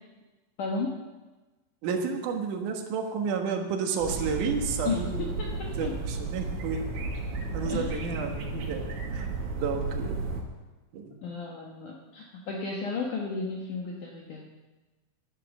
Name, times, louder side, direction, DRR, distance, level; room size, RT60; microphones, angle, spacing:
voice 1, 0.6-1.0 4.8-6.0 7.6-8.0 11.2-14.4, left 4 dB, 85° left, -1 dB, 1.7 m, -34 dB
voice 2, 1.8-5.2 5.8-6.9 7.5-8.8 9.1-9.3 9.6-10.2 10.9-11.2, right 5 dB, 70° right, 3 dB, 2.0 m, -31 dB
sound 1, 4.0-10.4, right 3 dB, 85° right, 4.4 m, -33 dB
11.5 x 11.5 x 7.1 m, 1.2 s
omnidirectional pair, 5.5 m